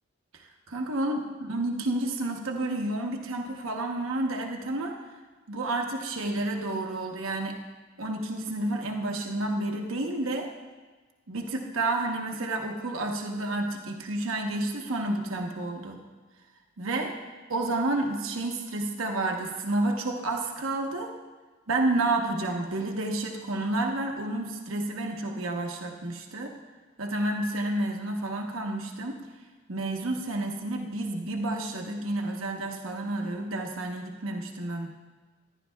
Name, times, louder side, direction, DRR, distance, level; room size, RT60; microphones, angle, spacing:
voice 1, 0.3-4.9 5.5-7.6 8.0-10.5 11.3-16.0 16.8-17.1 17.5-21.1 21.7-26.5 27.0-29.2 29.7-34.9, right 2 dB, 85° right, 2 dB, 1.0 m, -30 dB
14.5 x 11.0 x 2.3 m, 1.3 s
head